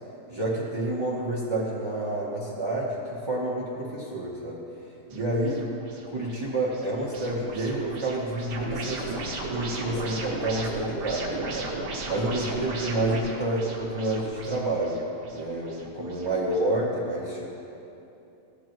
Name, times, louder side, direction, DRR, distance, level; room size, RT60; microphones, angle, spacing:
voice 1, 0.3-4.6 5.1-5.7 6.1-15.0 15.3-17.5, right 1 dB, 20° right, -7 dB, 0.8 m, -29 dB
sound 1, 5.1-16.6, right 2 dB, 80° right, 1.8 m, -36 dB
15.5 x 8.3 x 3.1 m, 2.8 s
omnidirectional pair, 1.8 m